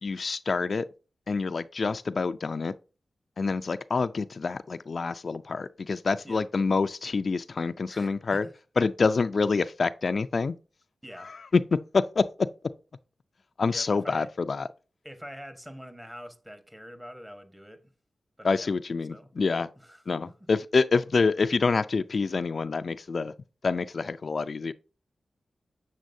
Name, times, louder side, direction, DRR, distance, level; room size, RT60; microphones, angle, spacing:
voice 1, 0.0-0.9 1.3-2.7 3.4-8.4 8.8-10.6 11.2-12.3 13.6-14.7 18.4-19.7 20.1-23.3 23.6-24.7, left 4 dB, 60° left, 0.3 m, -27 dB
voice 2, 7.9-8.5 11.0-11.3 13.7-14.3 15.0-17.9 18.4-18.7 19.1-19.3 19.8-20.3, equal, 10° right, 1.2 m, -45 dB
7.4 x 7.3 x 2.6 m
cardioid pair, 55°, 0 cm